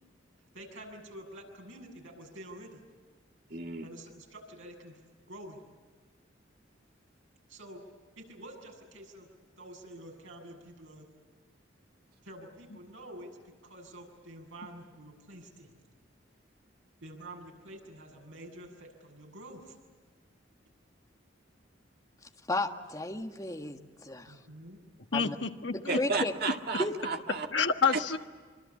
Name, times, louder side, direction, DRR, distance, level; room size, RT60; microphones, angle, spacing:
voice 1, 0.5-2.8 3.8-5.0 5.3-5.6 7.5-7.8 8.2-9.3 9.6-11.1 12.2-15.8 17.0-19.8 24.3-24.8, right 1 dB, 90° right, 1 dB, 7.6 m, -48 dB
voice 2, 3.5-3.9 25.9-27.5, right 4 dB, 55° right, 4 dB, 2.1 m, -33 dB
voice 3, 22.5-24.4 25.1-25.4 25.7-26.3 26.8-27.0, left 2 dB, 20° left, 4 dB, 1.6 m, -33 dB
voice 4, 25.1-26.0 27.5-28.2, left 5 dB, 70° left, 6 dB, 1.5 m, -28 dB
26.5 x 25.5 x 8.4 m, 1.5 s
head